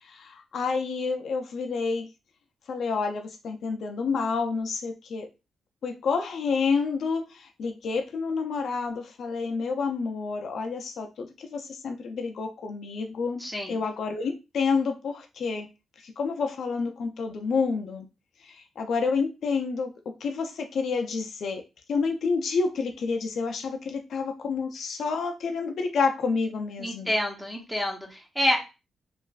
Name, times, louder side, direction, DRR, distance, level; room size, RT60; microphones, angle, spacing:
voice 1, 0.0-2.1 2.7-5.3 5.8-15.7 16.0-18.1 18.4-21.6 21.9-27.1, left 4 dB, 65° left, 5 dB, 0.4 m, -29 dB
voice 2, 13.4-13.8 26.8-28.6, left 1 dB, ahead, 1 dB, 0.7 m, -28 dB
3.1 x 2.4 x 2.3 m, 0.28 s
cardioid pair, 110°, 0 cm